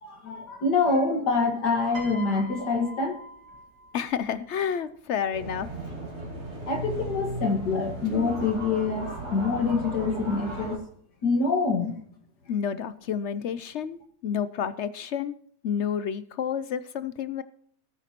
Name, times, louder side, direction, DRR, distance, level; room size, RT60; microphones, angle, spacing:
voice 1, 0.0-3.2 6.7-10.8 11.2-11.9, left 4 dB, 85° left, 3 dB, 2.4 m, -26 dB
Piano, 1.9-4.3 5.3-5.6, equal, 75° right, 3.3 m, -42 dB
voice 2, 3.9-5.7 12.5-15.4 15.6-17.4, left 8 dB, 65° left, 14 dB, 0.7 m, -30 dB
sound 1, 5.3-10.8, right 2 dB, 40° right, 3.3 m, -36 dB
19.0 x 9.1 x 3.0 m, 0.63 s
omnidirectional pair, 1.7 m